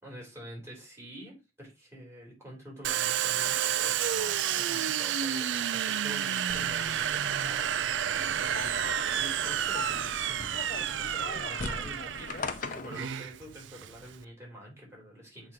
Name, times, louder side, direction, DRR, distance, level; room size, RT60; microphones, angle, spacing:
voice 1, 0.0-7.7 8.2-15.5, equal, 15° right, -3 dB, 3.4 m, -47 dB
Domestic sounds home sounds, 2.8-14.2, right 10 dB, 70° right, 0.4 m, -30 dB
sound 1, 6.5-13.1, left 3 dB, 45° left, 0.6 m, -41 dB
7.7 x 2.9 x 4.9 m, 0.27 s
head